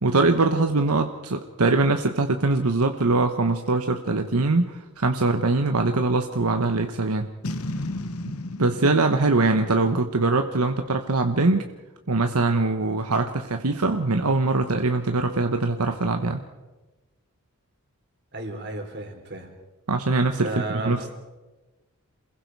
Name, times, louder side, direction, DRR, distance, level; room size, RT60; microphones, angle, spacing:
voice 1, 0.0-7.3 8.6-11.7 12.1-16.4 19.9-21.1, right 3 dB, 85° right, 6 dB, 1.2 m, -22 dB
Boom, 7.4-10.8, left 1 dB, 75° left, 1.2 m, -34 dB
voice 2, 18.3-19.5 20.4-21.1, right 2 dB, 50° right, 4 dB, 3.7 m, -33 dB
28.0 x 21.5 x 4.7 m, 1.1 s
head